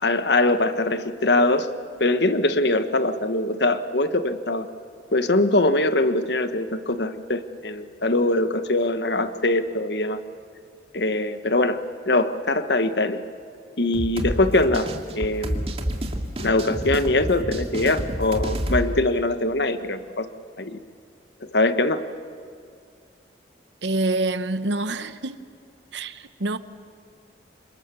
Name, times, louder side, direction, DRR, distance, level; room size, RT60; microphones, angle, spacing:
voice 1, 0.0-4.7 5.1-10.2 10.9-13.2 13.8-14.9 15.2-15.7 16.4-20.3 20.6-20.8 21.5-22.0, left 2 dB, 70° left, 1.3 m, -22 dB
sound 1, 13.9-18.9, equal, 35° right, 2.4 m, -29 dB
voice 2, 23.8-25.4 25.9-26.6, right 2 dB, 80° right, 1.1 m, -26 dB
29.5 x 26.5 x 7.0 m
head